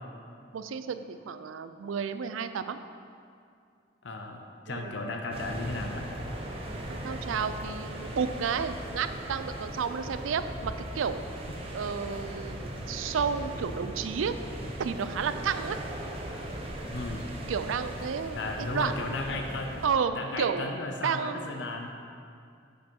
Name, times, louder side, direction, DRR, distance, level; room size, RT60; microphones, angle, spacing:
voice 1, 0.5-2.8 4.7-4.9 6.9-11.2 11.7-14.3 14.8-15.8 17.5-19.1 19.8-20.7 21.0-21.5, right 6 dB, 85° right, 10 dB, 0.4 m, -31 dB
voice 2, 4.0-6.1 16.9-17.2 18.3-19.8 20.1-21.9, left 2 dB, 65° left, 3 dB, 0.6 m, -35 dB
sound 1, 5.3-19.9, right 1 dB, 30° right, 0.7 m, -38 dB
9.0 x 5.3 x 4.4 m, 2.4 s
head